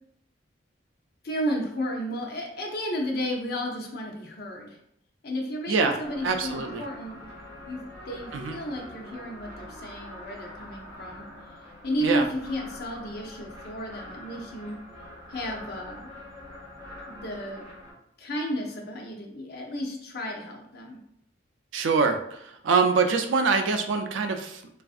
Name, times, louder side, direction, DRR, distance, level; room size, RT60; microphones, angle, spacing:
voice 1, 1.2-4.8 5.2-7.3 7.7-7.8 8.1-11.2 11.8-14.8 15.3-16.1 17.1-17.6 18.2-21.0, equal, 55° left, 1 dB, 0.6 m, -33 dB
voice 2, 5.7-6.8 8.3-8.6 12.0-12.2 21.7-24.6, right 4 dB, 85° right, 6 dB, 0.4 m, -25 dB
sound 1, 6.0-17.9, left 1 dB, 20° right, 1.2 m, -44 dB
3.4 x 2.4 x 2.4 m, 0.74 s
head